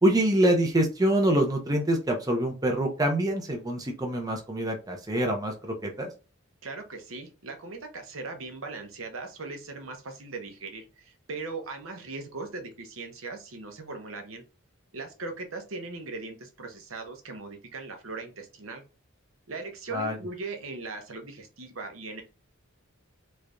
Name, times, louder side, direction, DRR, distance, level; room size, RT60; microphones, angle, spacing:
voice 1, 0.0-6.1 19.9-20.2, right 1 dB, 20° right, 2 dB, 0.6 m, -25 dB
voice 2, 6.6-14.4 14.9-18.8 19.5-22.2, right 3 dB, 70° right, 4 dB, 0.8 m, -39 dB
3.3 x 3.2 x 2.5 m, 0.31 s
head